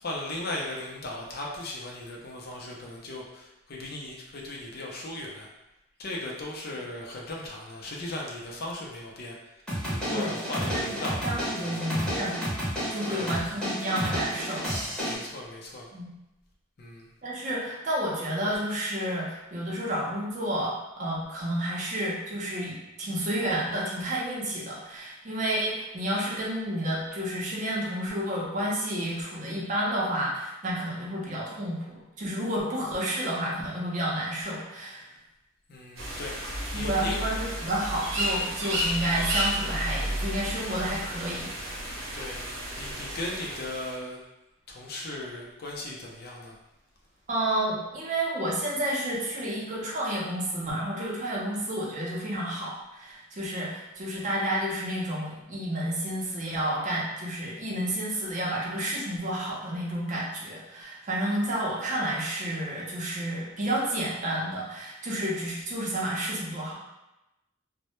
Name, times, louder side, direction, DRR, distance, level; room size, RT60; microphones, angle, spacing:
voice 1, 0.0-5.5 6.0-9.4 9.8-11.8 13.1-13.5 15.0-15.9 16.8-17.1 35.7-37.2 42.1-42.4 42.8-44.2 44.7-46.6, left 2 dB, 50° left, -2 dB, 0.4 m, -37 dB
sound 1, 9.7-15.2, equal, 5° left, 0.7 m, -31 dB
voice 2, 11.2-12.3 12.9-14.7 14.9-15.1 15.9-16.2 17.2-35.1 36.7-41.5 47.3-66.7, right 1 dB, 40° right, -4 dB, 0.5 m, -30 dB
sound 2, 36.0-44.0, equal, 85° right, 0.7 m, -32 dB
2.1 x 2.0 x 2.9 m, 0.95 s
head